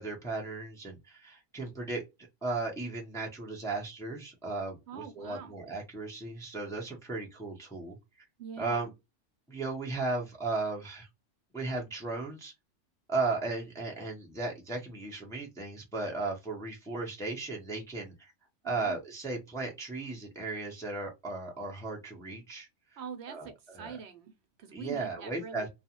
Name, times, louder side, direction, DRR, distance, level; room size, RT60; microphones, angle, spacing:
voice 1, 0.0-8.0 8.6-8.9 9.5-11.1 11.5-12.5 13.1-18.3 18.6-22.7 23.3-24.0 24.7-25.7, right 3 dB, 5° left, 0.5 m, -36 dB
voice 2, 4.9-5.5 8.4-8.9 18.6-19.0 23.0-25.7, right 7 dB, 70° right, 0.8 m, -44 dB
2.4 x 2.3 x 2.7 m
omnidirectional pair, 1.2 m